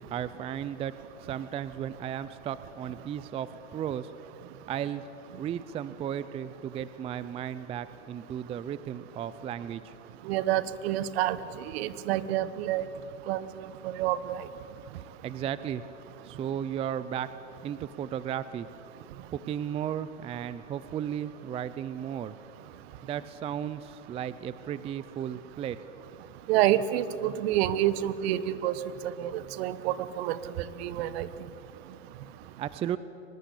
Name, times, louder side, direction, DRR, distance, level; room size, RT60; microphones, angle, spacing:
voice 1, 0.1-0.9 1.3-4.1 4.7-5.0 5.4-9.9 15.2-15.8 16.2-17.3 17.6-18.7 19.3-22.3 23.0-25.8 32.6-33.0, right 9 dB, 15° right, 15 dB, 0.4 m, -34 dB
voice 2, 10.3-11.4 11.7-12.9 13.3-13.5 13.8-14.4 26.5-28.7 29.0-29.3 29.6-30.4 30.8-31.3, right 13 dB, 55° right, 15 dB, 1.2 m, -27 dB
24.0 x 19.5 x 8.4 m, 3.0 s
hypercardioid pair, 120°, 38 cm